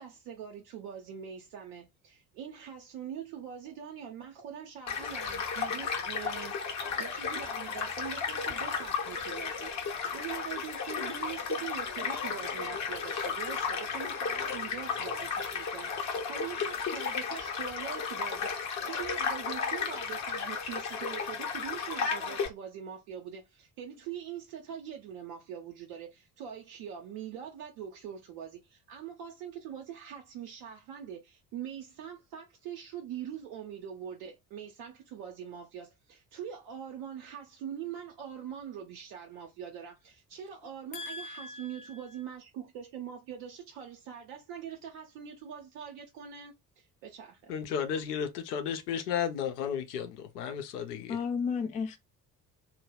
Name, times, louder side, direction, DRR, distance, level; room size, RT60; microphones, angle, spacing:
voice 1, 0.0-47.5, right 9 dB, 50° right, 0.6 m, -43 dB
Child speech kid speaking / Stream / Car passing by, 4.9-22.5, left 5 dB, 35° left, 0.8 m, -34 dB
voice 2, 40.9-42.0 51.1-52.0, left 5 dB, 20° left, 0.3 m, -34 dB
voice 3, 47.5-51.2, left 8 dB, 65° left, 0.7 m, -33 dB
2.2 x 2.0 x 3.2 m
figure-of-eight pair, 55°, 49 cm